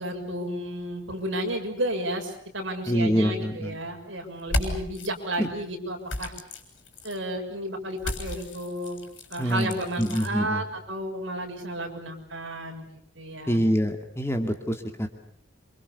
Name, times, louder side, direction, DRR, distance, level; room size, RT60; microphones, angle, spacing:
voice 1, 0.0-6.3 7.0-9.0 9.3-13.6, right 1 dB, 70° right, 3 dB, 6.9 m, -32 dB
voice 2, 2.9-3.7 5.4-5.5 9.4-10.6 13.5-15.1, equal, 15° left, 5 dB, 2.5 m, -25 dB
sound 1, 4.4-5.1 6.1-7.2 8.0-10.3, left 1 dB, 70° left, 6.9 m, -33 dB
28.0 x 26.0 x 7.1 m, 0.68 s
head